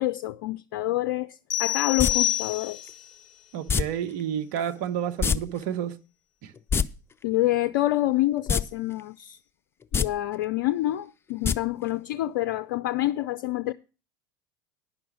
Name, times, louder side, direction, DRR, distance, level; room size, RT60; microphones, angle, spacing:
voice 1, 0.0-2.9 7.2-9.4 9.9-13.7, left 15 dB, 65° left, 0.4 m, -27 dB
sound 1, 1.5-3.0, left 14 dB, 40° left, 2.3 m, -27 dB
sound 2, 2.0-2.1 3.7-3.8 5.2-5.4 5.6-5.7 6.6-6.8 8.5-8.6 9.0-9.1 9.8-10.1 11.4-11.5 11.9-12.0, left 6 dB, 20° left, 0.7 m, -23 dB
sound 3, 2.1-4.4, left 2 dB, ahead, 5.1 m, -50 dB
voice 2, 3.5-5.9 6.4-6.5, right 9 dB, 60° right, 1.1 m, -30 dB
10.5 x 6.0 x 7.2 m
hypercardioid pair, 80°, 11 cm